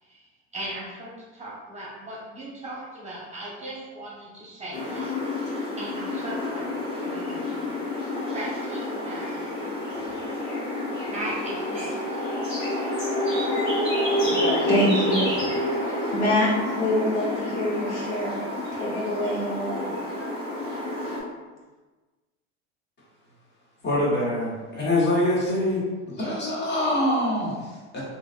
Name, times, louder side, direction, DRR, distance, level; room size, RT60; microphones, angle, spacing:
voice 1, 0.5-5.2 5.8-7.6 8.3-10.2 11.1-12.2, right 1 dB, 20° right, -5 dB, 0.9 m, -38 dB
sound 1, 4.7-21.2, left 1 dB, 90° left, 1.4 m, -28 dB
voice 2, 14.2-15.4 15.8-18.4 18.7-19.9 20.2-20.3 20.6-20.7 21.0-21.3, left 1 dB, 70° left, -5 dB, 1.2 m, -26 dB
voice 3, 23.8-25.8 26.1-28.0, left 1 dB, 30° left, -5 dB, 1.2 m, -24 dB
3.0 x 2.7 x 2.5 m, 1.2 s
hypercardioid pair, 85°, 37 cm